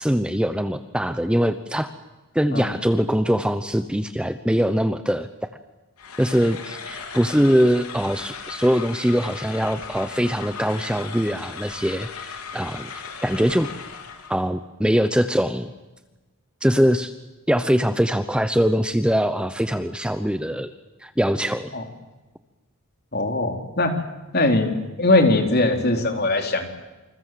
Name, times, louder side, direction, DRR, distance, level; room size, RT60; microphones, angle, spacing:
voice 1, 0.0-1.9 2.3-5.3 6.2-13.7 14.3-15.7 16.6-17.1 17.5-20.7 21.0-21.7, equal, 5° right, 10 dB, 0.8 m, -22 dB
sound 1, 6.0-14.4, left 6 dB, 85° left, 3.7 m, -37 dB
voice 2, 23.1-24.0 24.3-24.7 25.0-26.7, left 2 dB, 45° left, 5 dB, 3.8 m, -20 dB
28.5 x 27.5 x 7.7 m, 1.1 s
head